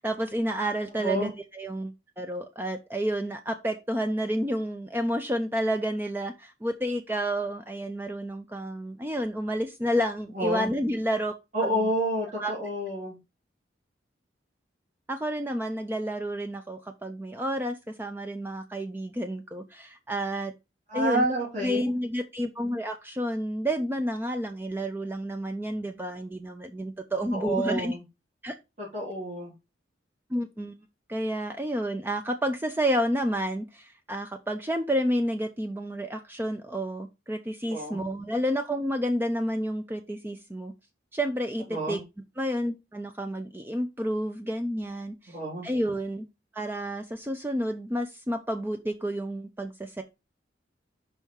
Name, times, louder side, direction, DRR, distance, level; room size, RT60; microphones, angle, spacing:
voice 1, 0.0-11.3 11.6-11.8 12.4-12.5 15.1-20.5 20.9-21.2 21.6-28.0 28.4-28.5 30.3-30.8 31.1-40.7 41.1-42.0 42.4-45.4 45.6-46.3 46.5-50.0, equal, 10° right, 0.5 m, -30 dB
voice 2, 1.0-1.3 10.3-10.7 11.5-13.2 20.9-21.9 27.3-28.0 28.8-29.5 37.7-38.0 41.7-42.0 45.3-45.6, right 1 dB, 40° right, 3.2 m, -29 dB
5.5 x 5.5 x 4.5 m
head